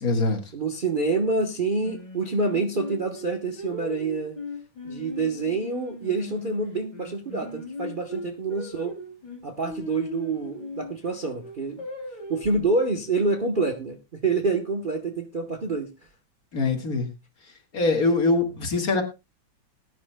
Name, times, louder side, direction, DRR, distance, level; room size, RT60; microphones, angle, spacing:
voice 1, 0.0-0.4 16.5-17.1 17.7-19.0, left 3 dB, 50° left, 4 dB, 2.0 m, -23 dB
voice 2, 0.5-4.4 4.8-8.9 9.4-11.8 12.3-14.0 14.2-15.9, right 3 dB, 35° right, 3 dB, 0.9 m, -27 dB
Singing, 1.8-6.5 6.9-10.9 11.4-12.6, left 2 dB, 20° left, 2.9 m, -38 dB
20.0 x 10.0 x 2.2 m, 0.26 s
omnidirectional pair, 2.1 m